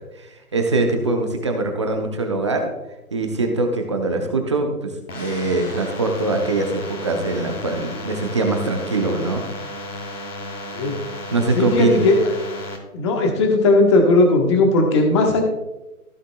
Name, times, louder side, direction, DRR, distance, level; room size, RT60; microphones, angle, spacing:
voice 1, 0.2-2.7 3.1-9.4 11.3-12.1, right 2 dB, 20° right, 4 dB, 0.7 m, -22 dB
sound 1, 5.1-12.8, left 1 dB, 80° left, 2.3 m, -33 dB
voice 2, 11.5-12.4 12.9-15.4, left 2 dB, 20° left, 3 dB, 1.2 m, -17 dB
15.0 x 7.4 x 2.3 m, 1.0 s
figure-of-eight pair, 150°, 45 cm